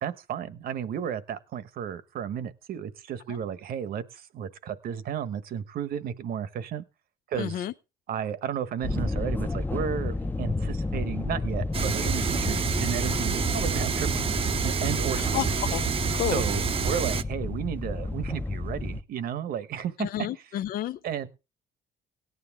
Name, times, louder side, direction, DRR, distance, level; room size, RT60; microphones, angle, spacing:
voice 1, 0.0-6.8 7.3-7.6 8.1-14.2 14.6-15.5 16.3-20.6 21.0-21.3, right 8 dB, 60° right, 1.2 m, -33 dB
voice 2, 7.4-7.7 15.2-15.8 16.2-16.4 20.0-21.0, left 13 dB, 60° left, 0.6 m, -30 dB
sound 1, 8.8-19.0, left 3 dB, 10° left, 0.7 m, -31 dB
sound 2, 11.7-17.2, right 7 dB, 35° right, 0.7 m, -28 dB
17.5 x 9.6 x 3.6 m
cardioid pair, 110°, 17 cm